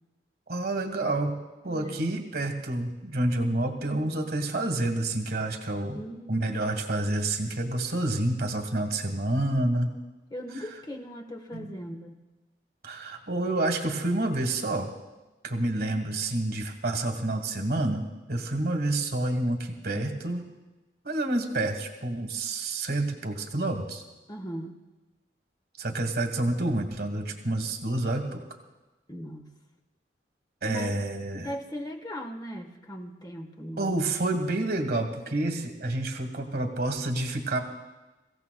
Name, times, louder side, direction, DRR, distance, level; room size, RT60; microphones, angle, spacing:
voice 1, 0.5-1.4 1.6-6.0 6.3-9.9 11.5-11.8 12.8-14.9 15.4-20.5 21.0-24.0 25.8-28.4 30.6-31.5 33.8-37.6, right 2 dB, 60° right, 6 dB, 1.4 m, -28 dB
voice 2, 1.7-2.2 5.9-6.7 10.3-12.2 19.9-20.2 24.3-24.8 29.1-29.5 30.6-31.0 31.3-34.0, equal, 25° left, 5 dB, 1.3 m, -39 dB
24.0 x 15.5 x 2.3 m, 1.1 s
head